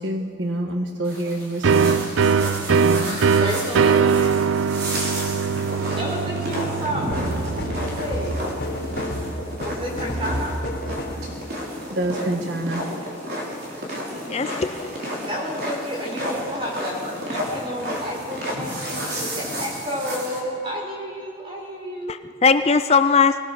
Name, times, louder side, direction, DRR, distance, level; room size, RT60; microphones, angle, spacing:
voice 1, 0.0-2.4 2.7-3.2 11.9-12.9, right 1 dB, 70° right, 3 dB, 1.4 m, -27 dB
sound 1, 1.0-20.4, equal, 50° right, 4.3 m, -32 dB
sound 2, 1.6-9.1, right 5 dB, 85° right, 0.5 m, -22 dB
voice 2, 3.4-4.5 5.7-8.4 9.6-10.5 15.2-22.2, equal, 25° right, -2 dB, 5.5 m, -31 dB
sound 3, 7.1-11.3, equal, 60° left, 3.7 m, -30 dB
voice 3, 14.3-15.0 22.1-23.4, left 5 dB, 30° left, 10 dB, 0.5 m, -19 dB
24.0 x 19.0 x 6.5 m, 2.2 s
head